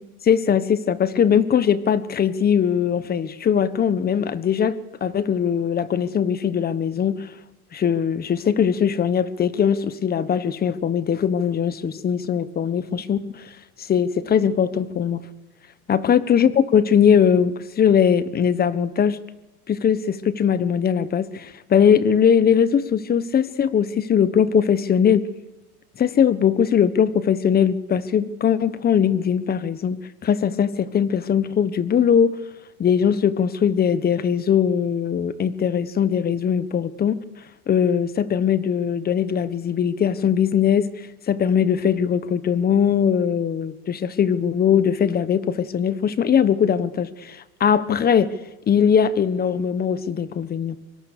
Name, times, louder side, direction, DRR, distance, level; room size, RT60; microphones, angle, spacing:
voice 1, 0.2-7.3 7.7-13.5 13.8-15.2 15.9-19.2 19.7-25.3 26.0-32.4 32.8-37.2 37.7-48.3 48.7-50.7, left 8 dB, 20° left, 14 dB, 1.3 m, -20 dB
25.0 x 23.5 x 6.8 m, 1.1 s
supercardioid pair, 130°, 45 cm